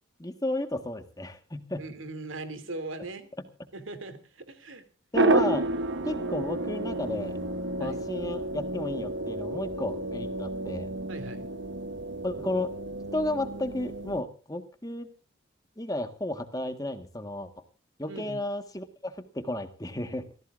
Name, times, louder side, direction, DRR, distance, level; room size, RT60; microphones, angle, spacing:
voice 1, 0.2-1.8 5.1-5.7 6.0-7.4 7.8-11.0 12.2-12.7 13.1-15.1 15.8-17.5 18.0-20.3, left 1 dB, 20° left, 8 dB, 1.4 m, -33 dB
voice 2, 1.8-3.3 3.7-4.8 7.8-8.0 11.1-11.5 18.1-18.4, right 2 dB, 90° right, 9 dB, 2.7 m, -39 dB
sound 1, 5.1-14.2, right 2 dB, 70° right, 1.0 m, -30 dB
27.0 x 15.0 x 2.5 m, 0.35 s
head